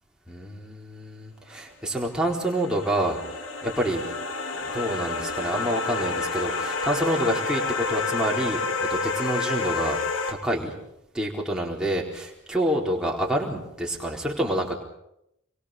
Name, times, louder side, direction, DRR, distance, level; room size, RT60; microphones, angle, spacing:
voice 1, 0.3-3.2 3.6-4.0 4.5-10.0 10.3-10.7 11.1-14.8, right 1 dB, 5° right, -2 dB, 4.3 m, -27 dB
sound 1, 1.9-10.3, left 4 dB, 70° left, 3.0 m, -29 dB
27.5 x 23.5 x 6.8 m, 0.82 s
head